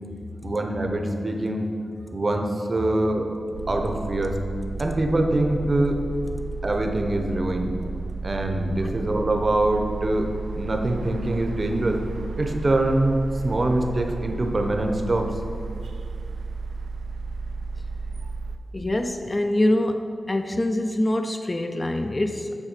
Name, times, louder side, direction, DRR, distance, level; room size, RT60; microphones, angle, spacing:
voice 1, 0.4-1.7 2.1-3.3 3.7-4.4 4.8-6.0 6.6-7.7 8.2-12.0 12.4-15.3, right 1 dB, 35° right, 4 dB, 0.7 m, -24 dB
sound 1, 3.5-18.6, right 4 dB, 85° right, 0.3 m, -33 dB
voice 2, 18.7-22.7, left 1 dB, 25° left, 6 dB, 0.4 m, -25 dB
7.3 x 4.7 x 6.5 m, 2.3 s
wide cardioid pair, 145°, 0 cm